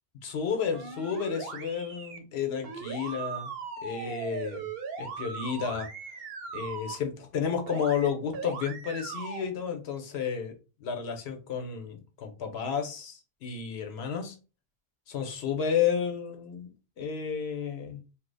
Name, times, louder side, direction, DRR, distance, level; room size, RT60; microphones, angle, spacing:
voice 1, 0.2-3.5 3.8-4.7 5.0-5.9 6.5-10.5 10.8-14.4 15.1-16.7 17.0-18.0, left 7 dB, 90° left, 1.0 m, -31 dB
sound 1, 0.7-2.2 2.6-7.0 7.7-8.1 8.3-9.4, right 5 dB, 70° right, 0.9 m, -39 dB
2.7 x 2.0 x 3.8 m
omnidirectional pair, 1.0 m